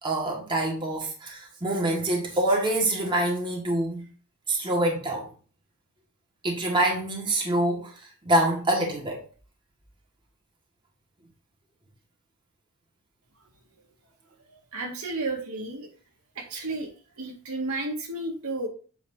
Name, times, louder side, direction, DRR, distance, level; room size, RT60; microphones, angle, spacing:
voice 1, 0.0-4.0 4.5-5.3 6.4-7.9 8.3-9.2, right 1 dB, 20° right, -2 dB, 2.0 m, -25 dB
voice 2, 14.5-15.9 16.4-16.9 17.2-18.7, right 2 dB, 80° right, 0 dB, 2.1 m, -32 dB
8.1 x 5.9 x 2.8 m, 0.38 s
head